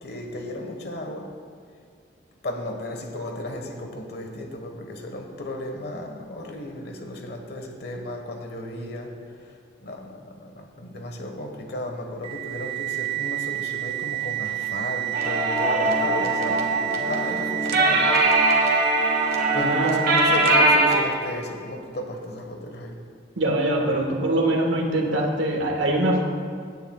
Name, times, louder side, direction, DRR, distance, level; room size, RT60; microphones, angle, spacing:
voice 1, 0.0-1.3 2.4-9.1 9.8-18.1 19.5-23.0, left 1 dB, 55° left, 3 dB, 1.3 m, -34 dB
sound 1, 12.2-20.8, right 16 dB, 30° right, 0.4 m, -29 dB
sound 2, 15.1-21.0, right 2 dB, 50° right, 1.5 m, -21 dB
voice 2, 19.5-20.1 23.4-26.2, right 1 dB, 90° right, 1 dB, 1.6 m, -23 dB
17.5 x 9.9 x 2.3 m, 2.2 s
head